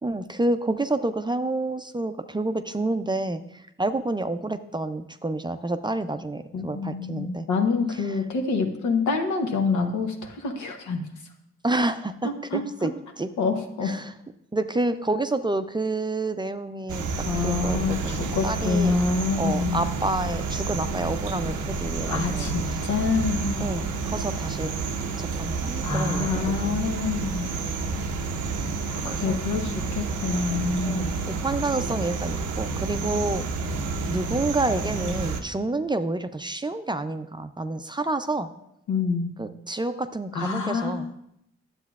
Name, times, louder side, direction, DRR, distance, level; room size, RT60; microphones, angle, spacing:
voice 1, 0.0-7.5 11.6-12.9 13.2-13.3 13.8-14.1 14.5-17.1 17.4-19.0 19.4-22.9 23.6-24.7 25.2-26.8 29.0-29.4 30.9-33.5 34.1-38.5 39.4-41.1, right 2 dB, 15° right, 9 dB, 0.4 m, -29 dB
voice 2, 6.5-11.0 12.2-12.9 13.4-13.9 17.3-19.8 22.1-23.6 25.8-27.5 28.9-31.1 38.9-39.3 40.3-41.1, left 4 dB, 90° left, 4 dB, 0.9 m, -27 dB
sound 1, 16.9-35.4, right 4 dB, 85° right, 0.6 m, -30 dB
9.9 x 7.2 x 2.4 m, 0.79 s
supercardioid pair, 55°, 29 cm